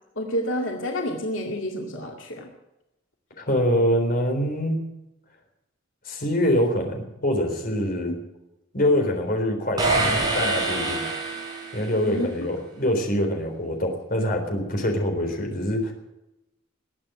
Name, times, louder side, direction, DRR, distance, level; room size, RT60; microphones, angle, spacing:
voice 1, 0.2-2.5 8.1-8.2 12.0-12.3, equal, 90° left, 1 dB, 2.2 m, -29 dB
voice 2, 3.4-4.8 6.1-8.1 8.7-10.0 10.3-11.0 11.7-15.9, left 1 dB, 50° left, 3 dB, 3.9 m, -24 dB
sound 1, 9.8-12.0, right 2 dB, 20° right, 4.5 m, -25 dB
21.0 x 8.7 x 7.9 m, 0.92 s
head